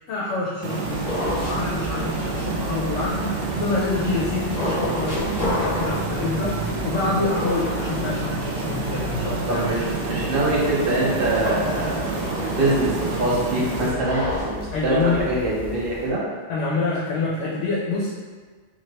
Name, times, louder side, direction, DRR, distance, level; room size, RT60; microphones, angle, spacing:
voice 1, 0.1-9.7 14.7-15.3 16.5-18.1, left 3 dB, 70° left, -5 dB, 0.9 m, -27 dB
sound 1, 0.6-13.9, right 3 dB, 70° right, 0.3 m, -29 dB
sound 2, 0.8-16.1, left 2 dB, 30° left, 1.0 m, -32 dB
sound 3, 1.7-11.5, equal, 85° right, 1.3 m, -40 dB
voice 2, 9.5-16.3, right 1 dB, 50° right, -5 dB, 1.0 m, -24 dB
3.1 x 2.8 x 2.9 m, 1.5 s
omnidirectional pair, 1.3 m